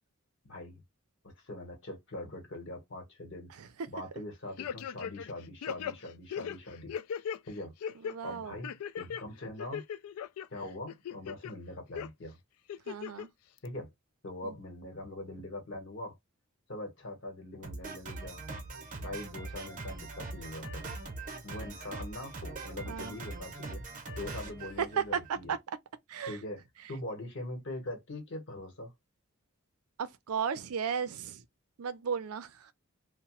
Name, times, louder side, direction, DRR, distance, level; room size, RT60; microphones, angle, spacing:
voice 1, 0.4-0.8 1.2-3.5 3.9-6.9 7.5-7.7 8.2-8.7 9.0-9.8 10.5-12.4 13.6-13.9 14.2-16.2 16.7-18.4 19.0-20.9 21.4-23.8 24.2-25.5 26.3-26.6 26.9-28.9, left 1 dB, 60° left, 1.0 m, -42 dB
voice 2, 3.5-3.9 7.9-8.6 12.8-13.3 14.4-14.5 22.9-23.2 24.8-25.8 26.1-26.4 26.8-26.9 30.0-31.5 31.8-32.7, right 7 dB, 90° right, 0.5 m, -35 dB
sound 1, 4.6-5.3 5.6-7.4 7.8-8.2 8.6-9.2 9.6-10.5 10.9-11.5 12.0-12.1 12.7-13.3 13.7-13.8, left 8 dB, 85° left, 0.3 m, -38 dB
Drum kit, 17.6-25.4, right 3 dB, 35° right, 0.7 m, -42 dB
2.8 x 2.1 x 3.0 m
head